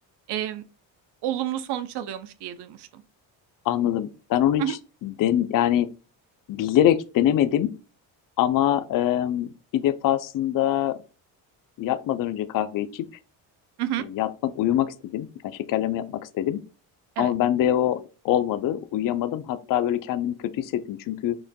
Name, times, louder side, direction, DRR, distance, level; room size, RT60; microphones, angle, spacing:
voice 1, 0.3-0.6 1.2-2.8 4.6-4.7 13.8-14.0 17.2-17.3, right 12 dB, 60° right, 0.6 m, -29 dB
voice 2, 3.7-5.9 6.5-7.7 8.4-11.0 11.8-13.1 14.0-16.6 17.2-21.4, left 11 dB, 45° left, 0.5 m, -24 dB
5.9 x 2.5 x 2.2 m
supercardioid pair, 75°, 45 cm